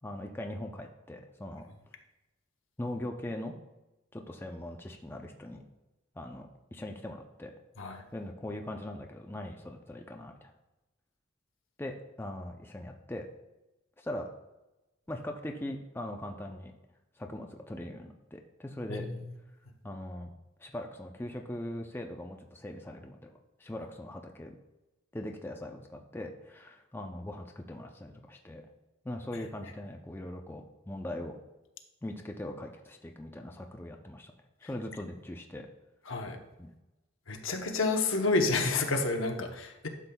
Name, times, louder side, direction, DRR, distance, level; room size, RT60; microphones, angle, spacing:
voice 1, 0.0-1.7 2.8-3.6 4.1-5.6 6.2-7.5 8.1-10.5 11.8-13.3 14.0-14.3 15.1-16.7 17.2-19.1 19.8-20.3 20.6-23.3 23.6-24.6 25.1-28.6 29.0-31.4 32.0-34.3 34.6-35.7 36.6-36.7, left 1 dB, 10° left, 3 dB, 0.4 m, -40 dB
voice 2, 18.9-19.3 36.1-36.4 37.3-39.9, left 3 dB, 75° left, 4 dB, 0.9 m, -30 dB
12.0 x 7.3 x 2.3 m, 1.0 s
head